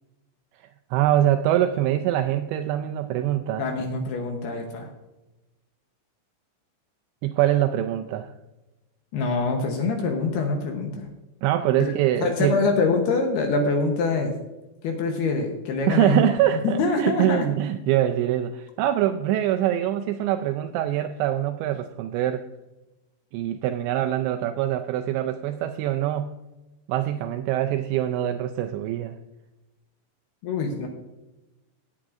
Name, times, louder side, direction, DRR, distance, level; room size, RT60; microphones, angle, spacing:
voice 1, 0.9-3.6 7.2-8.3 11.4-12.7 15.9-22.5 23.3-26.4 26.9-29.2, right 12 dB, 85° right, 7 dB, 2.6 m, -24 dB
voice 2, 3.6-4.9 9.1-11.1 11.8-11.9 12.2-14.4 14.8-16.3 16.6-17.5 30.4-30.9, left 3 dB, 70° left, 3 dB, 2.6 m, -25 dB
17.0 x 8.6 x 2.5 m, 1.0 s
omnidirectional pair, 5.6 m